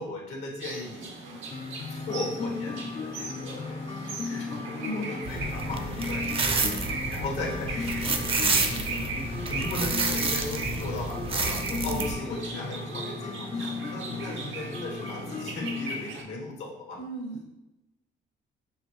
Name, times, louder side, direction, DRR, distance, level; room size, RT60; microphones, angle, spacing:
voice 1, 0.0-1.2 1.9-8.3 8.9-17.0, left 2 dB, 80° left, -1 dB, 1.1 m, -37 dB
sound 1, 0.6-16.2, right 3 dB, 80° right, 0.8 m, -38 dB
sound 2, 1.5-15.9, left 4 dB, 30° left, 0.4 m, -36 dB
voice 2, 4.8-5.1 6.6-6.9 8.4-8.9 11.8-12.1 13.6-13.7 14.2-14.4 17.0-17.4, left 1 dB, 60° left, -2 dB, 1.0 m, -37 dB
sound 3, 5.3-12.1, right 3 dB, 25° right, 0.5 m, -30 dB
6.2 x 2.3 x 3.0 m, 0.94 s
cardioid pair, 90°, 20 cm